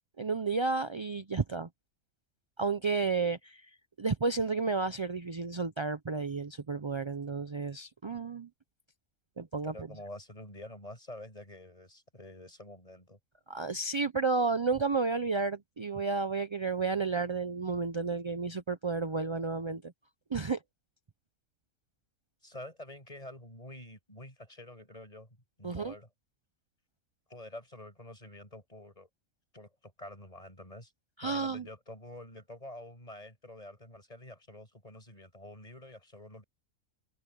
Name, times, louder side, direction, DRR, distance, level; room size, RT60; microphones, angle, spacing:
voice 1, 0.2-1.7 2.6-3.7 4.0-8.5 9.4-9.7 13.5-19.8 20.3-20.6 25.6-25.9 31.2-31.7, right 4 dB, 50° right, 0.3 m, -31 dB
voice 2, 9.6-13.2 22.4-26.1 27.3-29.1 29.5-30.9 31.2-36.4, left 1 dB, 25° left, 7.0 m, -48 dB
omnidirectional pair, 1.5 m